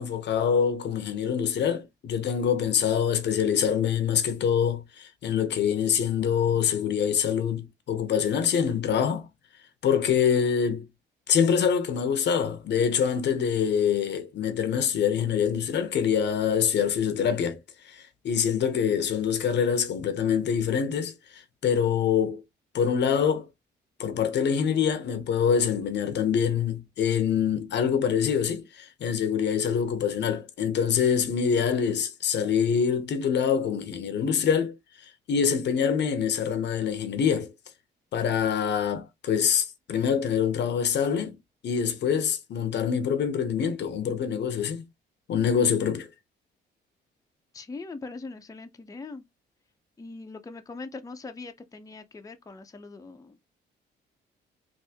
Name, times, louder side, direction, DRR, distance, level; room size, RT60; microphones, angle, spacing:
voice 1, 0.0-9.3 9.8-10.9 11.3-17.6 17.8-22.4 22.7-23.5 24.0-34.8 35.0-37.5 38.1-41.4 41.6-44.8 45.3-46.1, left 7 dB, 60° left, 0.7 m, -25 dB
voice 2, 47.5-49.2 50.0-53.4, left 3 dB, 15° left, 0.6 m, -41 dB
3.4 x 2.6 x 2.8 m
cardioid pair, 90°, 20 cm